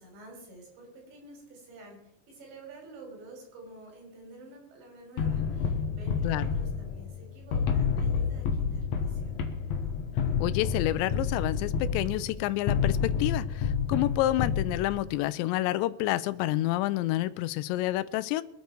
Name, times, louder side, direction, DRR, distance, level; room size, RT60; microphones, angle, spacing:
voice 1, 0.0-2.0 2.3-9.4, right 2 dB, 85° right, 1 dB, 6.2 m, -49 dB
sound 1, 5.2-15.1, left 6 dB, 70° left, 1.7 m, -29 dB
voice 2, 6.2-6.5 10.4-18.4, left 15 dB, 85° left, 16 dB, 2.9 m, -29 dB
23.5 x 8.5 x 4.6 m, 0.85 s
omnidirectional pair, 5.0 m